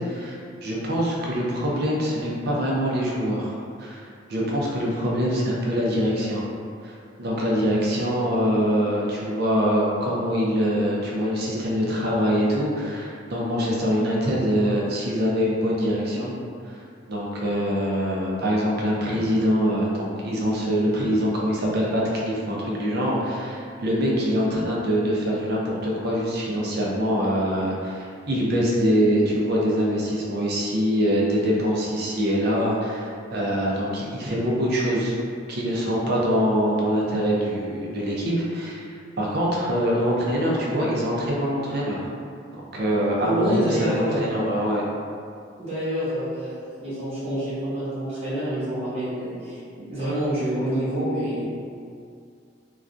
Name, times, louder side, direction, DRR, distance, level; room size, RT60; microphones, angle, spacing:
voice 1, 0.0-3.5 3.8-4.0 4.3-6.4 6.8-6.9 7.2-16.3 16.6-16.8 17.1-35.2 35.5-38.8 39.2-42.0 42.7-44.8, equal, 55° right, -4 dB, 0.5 m, -24 dB
voice 2, 43.2-44.3 45.6-46.5 46.8-49.6 49.9-51.4, right 1 dB, 30° right, -12 dB, 1.0 m, -27 dB
2.4 x 2.1 x 2.5 m, 2.3 s
head